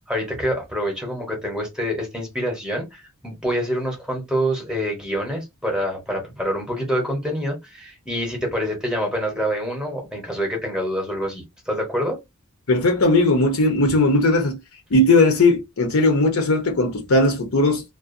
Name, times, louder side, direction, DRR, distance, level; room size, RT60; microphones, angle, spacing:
voice 1, 0.1-12.2, equal, 5° right, 0.8 m, -26 dB
voice 2, 12.7-14.6 14.9-17.8, left 2 dB, 65° left, 0.7 m, -18 dB
2.4 x 2.1 x 2.5 m
head